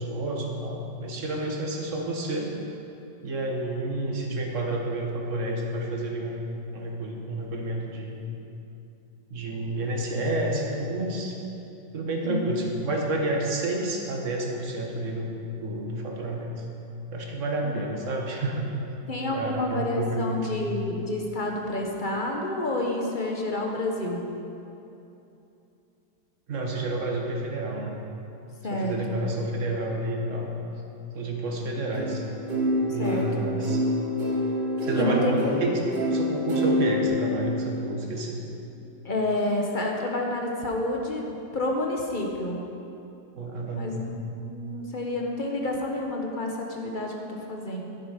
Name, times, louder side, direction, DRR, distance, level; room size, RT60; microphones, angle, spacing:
voice 1, 0.0-2.6 3.2-6.4 6.7-8.2 9.3-11.3 11.9-16.5 17.1-18.7 19.3-20.5 26.5-27.9 28.7-30.5 31.1-32.2 32.9-33.8 34.8-35.8 36.1-38.4 43.3-44.2, right 1 dB, 50° right, 0 dB, 1.6 m, -30 dB
voice 2, 12.2-12.7 17.6-17.7 19.1-24.2 28.6-29.2 31.6-31.7 33.0-33.2 34.9-35.5 39.0-42.6 43.7-44.1 44.4-47.8, left 1 dB, 35° left, 0 dB, 1.0 m, -29 dB
sound 1, 31.9-37.1, equal, 75° right, 2.5 m, -27 dB
11.0 x 9.5 x 5.1 m, 2.8 s
omnidirectional pair, 1.8 m